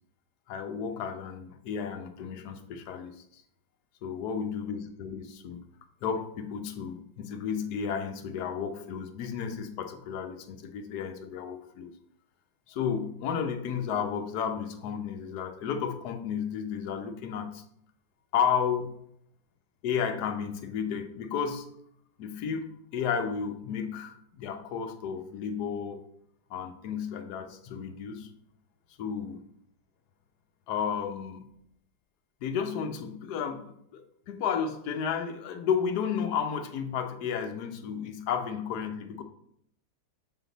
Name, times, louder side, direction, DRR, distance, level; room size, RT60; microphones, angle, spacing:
voice 1, 0.5-3.4 4.0-5.6 6.0-11.9 12.7-17.6 18.3-19.0 19.8-21.7 22.2-26.0 26.5-28.3 29.0-29.4 30.7-31.5 32.4-33.7 33.9-39.2, left 7 dB, 65° left, 7 dB, 1.3 m, -32 dB
7.9 x 5.0 x 4.0 m, 0.72 s
omnidirectional pair, 2.0 m